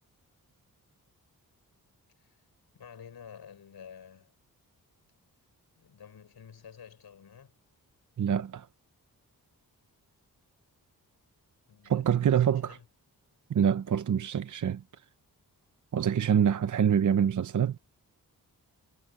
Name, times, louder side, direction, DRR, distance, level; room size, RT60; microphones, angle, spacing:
voice 1, 2.7-4.3 5.7-7.6 11.7-12.9, left 7 dB, 90° left, 6.8 m, -50 dB
voice 2, 8.2-8.7 11.9-12.8 13.5-14.8 15.9-17.8, right 8 dB, 55° right, 0.8 m, -25 dB
wide cardioid pair, 110°, 37 cm